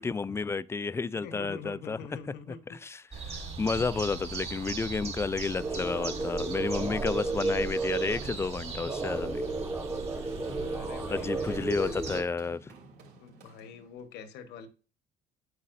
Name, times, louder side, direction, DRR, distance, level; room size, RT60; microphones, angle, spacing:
voice 1, 0.0-2.2 2.5-9.4 11.1-12.7, left 4 dB, 15° left, 0.3 m, -31 dB
voice 2, 1.2-2.8 10.6-12.2 13.2-14.7, left 6 dB, 85° left, 1.2 m, -45 dB
sound 1, 3.1-12.2, right 4 dB, 35° right, 2.2 m, -39 dB
sound 2, 5.6-12.2, right 3 dB, 15° right, 0.9 m, -33 dB
Run, 8.2-14.1, right 1 dB, 75° right, 3.1 m, -53 dB
8.5 x 8.2 x 2.6 m
cardioid pair, 110°, 17 cm